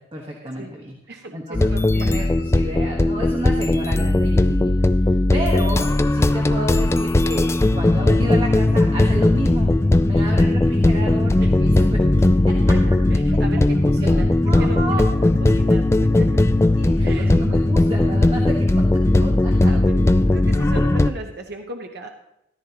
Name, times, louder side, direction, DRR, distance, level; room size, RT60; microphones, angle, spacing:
voice 1, 0.0-4.7 5.0-9.7 10.0-12.0 12.5-12.6 14.0-15.0 16.7-19.7, right 1 dB, 30° right, 0 dB, 1.3 m, -31 dB
voice 2, 1.1-2.3 10.1-10.4 11.4-11.5 11.8-11.9 12.7-12.8 13.1-14.3 14.6-16.4 17.0-17.4 19.6-20.0 20.3-22.1, right 2 dB, 60° right, 3 dB, 0.9 m, -36 dB
sound 1, 1.5-21.1, left 2 dB, 15° left, 0.3 m, -18 dB
14.0 x 12.5 x 2.9 m, 0.83 s
head